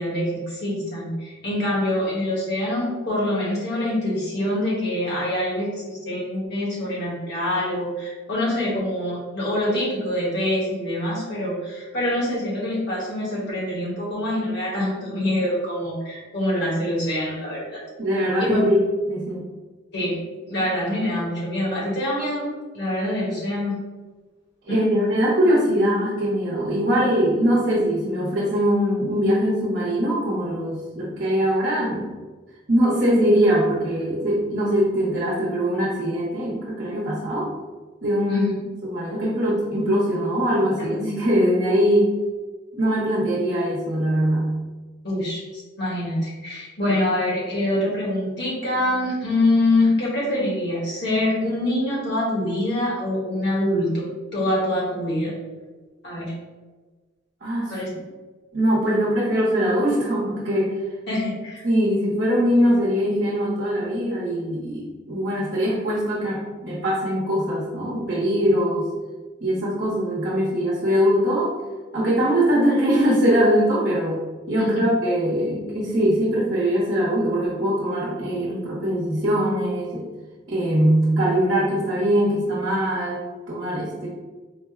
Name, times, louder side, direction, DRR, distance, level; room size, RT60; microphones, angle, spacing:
voice 1, 0.0-17.8 18.4-18.6 19.9-20.1 20.5-22.4 22.7-23.8 24.7-24.8 38.3-38.5 45.0-55.3 56.0-56.3 57.7-57.9 61.1-61.6 74.6-74.9, left 1 dB, 60° left, -6 dB, 1.5 m, -25 dB
voice 2, 18.0-19.4 24.6-32.1 32.7-37.5 38.0-42.1 42.7-44.5 57.4-58.0 58.5-60.7 61.6-68.9 69.4-71.5 71.9-74.2 74.5-80.0 80.5-84.1, equal, 55° right, -6 dB, 0.9 m, -22 dB
3.9 x 2.1 x 3.5 m, 1.3 s
head